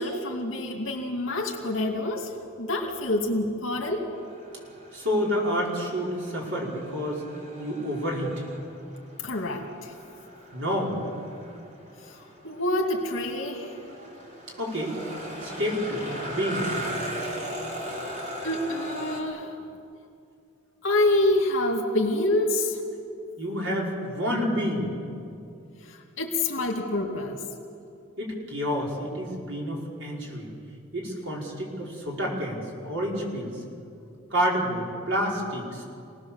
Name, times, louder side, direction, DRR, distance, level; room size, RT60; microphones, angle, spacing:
voice 1, 0.0-2.3 2.6-4.1 9.2-9.9 12.0-13.8 18.0-19.5 20.8-22.8 25.8-27.4, left 1 dB, 70° left, 1 dB, 2.5 m, -27 dB
sound 1, 4.1-19.2, right 1 dB, 35° right, 3.8 m, -38 dB
voice 2, 4.9-7.2 7.6-8.3 10.5-11.0 14.6-15.0 15.4-16.7 23.4-24.9 28.2-30.5 30.9-33.5 34.3-35.8, equal, 65° right, -3 dB, 5.3 m, -29 dB
27.0 x 19.0 x 7.3 m, 2.5 s
head